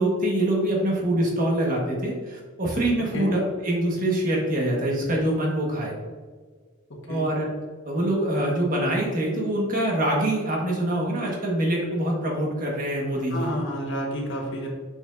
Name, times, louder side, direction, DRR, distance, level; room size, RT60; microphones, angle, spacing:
voice 1, 0.0-5.9 7.1-7.5 7.8-13.5, right 1 dB, 40° right, -2 dB, 1.5 m, -25 dB
voice 2, 13.3-14.7, equal, 55° left, -1 dB, 1.4 m, -29 dB
6.5 x 6.2 x 2.6 m, 1.5 s
head